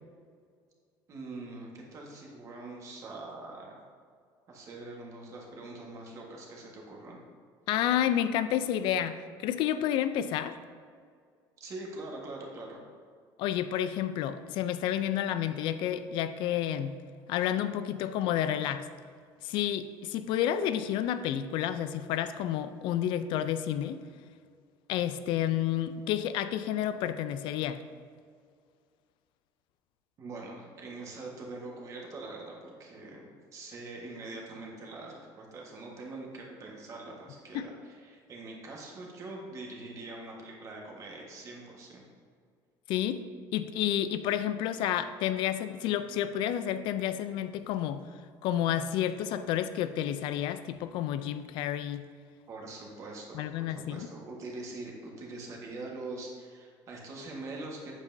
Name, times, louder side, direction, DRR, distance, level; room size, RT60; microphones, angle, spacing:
voice 1, 1.1-3.8 4.5-7.2 11.6-12.8 30.2-42.0 52.5-57.9, right 2 dB, 35° right, -1 dB, 1.4 m, -43 dB
voice 2, 7.7-10.6 13.4-16.9 17.3-18.9 19.4-24.0 24.9-27.8 37.5-37.6 42.9-43.2 43.5-48.0 48.4-52.1 53.3-54.1, left 11 dB, 65° left, 12 dB, 0.4 m, -30 dB
8.1 x 7.4 x 2.7 m, 2.1 s
cardioid pair, 160°, 9 cm